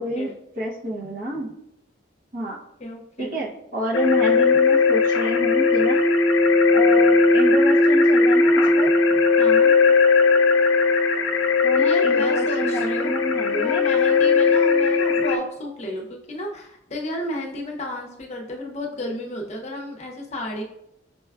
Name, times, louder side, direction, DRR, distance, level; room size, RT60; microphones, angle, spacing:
voice 1, 0.0-1.5 2.3-2.6 3.2-6.1 6.7-9.2 11.6-13.8, right 1 dB, 45° right, -2 dB, 0.7 m, -29 dB
voice 2, 2.8-3.3 9.4-9.7 11.8-13.2 13.5-20.6, left 1 dB, 35° left, 1 dB, 0.6 m, -32 dB
sound 1, 3.9-15.4, left 4 dB, 85° left, 0.4 m, -18 dB
5.3 x 2.2 x 2.3 m, 0.80 s
head